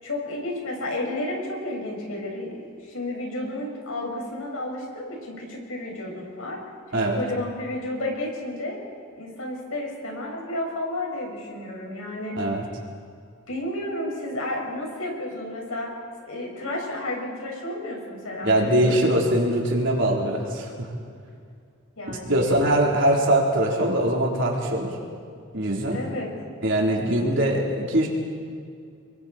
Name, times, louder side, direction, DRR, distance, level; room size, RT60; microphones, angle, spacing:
voice 1, 0.0-6.6 6.9-8.8 9.2-12.4 13.5-15.9 16.3-19.0 22.0-22.6 25.9-26.3, left 1 dB, 85° left, 0 dB, 6.0 m, -32 dB
voice 2, 18.4-20.9 22.3-24.9 25.5-26.0 26.6-28.1, right 1 dB, 60° right, -2 dB, 3.9 m, -22 dB
29.5 x 23.0 x 4.4 m, 2.3 s
head